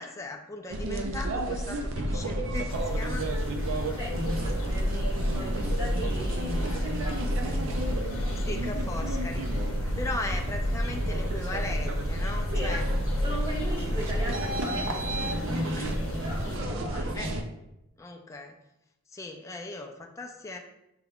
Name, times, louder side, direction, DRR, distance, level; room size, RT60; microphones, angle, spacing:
voice 1, 0.0-3.3 5.2-5.5 8.4-9.5 9.8-12.9 15.1-15.3 15.8-15.9 17.1-17.3 18.0-18.6 19.1-20.6, left 2 dB, 15° left, 2 dB, 0.3 m, -38 dB
sound 1, 0.7-17.4, equal, 65° right, 0.5 m, -29 dB
sound 2, 2.7-16.6, left 1 dB, 80° left, 0.7 m, -41 dB
voice 2, 3.9-7.7 12.5-12.8 13.2-17.5, equal, 25° right, -6 dB, 1.5 m, -37 dB
5.8 x 3.5 x 2.3 m, 0.86 s
head